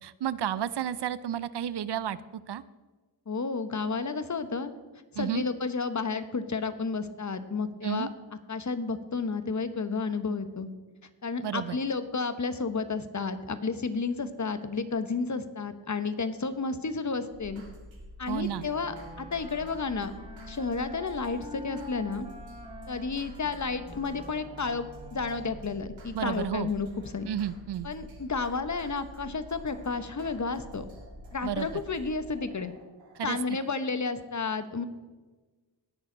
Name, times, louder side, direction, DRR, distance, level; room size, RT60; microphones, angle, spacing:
voice 1, 0.0-2.2 2.5-2.6 5.2-5.4 7.8-8.1 11.4-11.8 18.3-18.7 26.1-26.7 27.3-27.9 31.4-31.7 33.2-33.4, right 10 dB, 65° right, 17 dB, 0.6 m, -31 dB
voice 2, 3.3-4.7 5.1-8.1 8.5-10.7 11.2-17.6 18.2-20.1 20.5-22.3 22.9-27.3 27.8-30.9 31.3-32.7 33.2-34.8, left 4 dB, 40° left, 11 dB, 1.1 m, -31 dB
sound 1, 17.3-34.1, equal, 85° right, 2.7 m, -48 dB
Wind instrument woodwind instrument, 18.4-25.9, left 1 dB, 10° right, 3.7 m, -46 dB
18.5 x 6.5 x 3.9 m, 1.3 s
cardioid pair, 55°, 45 cm